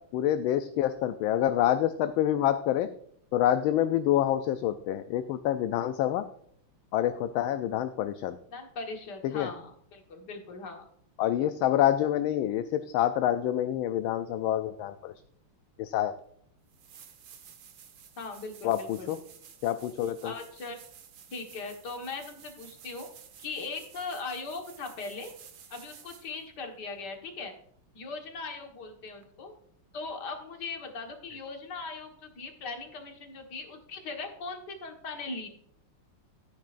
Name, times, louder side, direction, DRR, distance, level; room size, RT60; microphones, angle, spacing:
voice 1, 0.1-2.9 3.3-6.3 6.9-8.4 9.2-9.5 11.2-15.1 15.8-16.1 18.6-19.2 19.6-20.3, left 11 dB, 75° left, 10 dB, 1.3 m, -27 dB
voice 2, 8.5-10.9 18.2-19.1 20.2-20.8 21.3-23.1 23.4-25.3 25.7-27.5 27.9-29.5 29.9-35.5, left 4 dB, 50° left, 3 dB, 2.0 m, -39 dB
sound 1, 16.2-16.3 16.7-26.4 29.2-29.3, right 8 dB, 70° right, 1.9 m, -53 dB
14.5 x 9.4 x 2.5 m, 0.69 s
omnidirectional pair, 2.4 m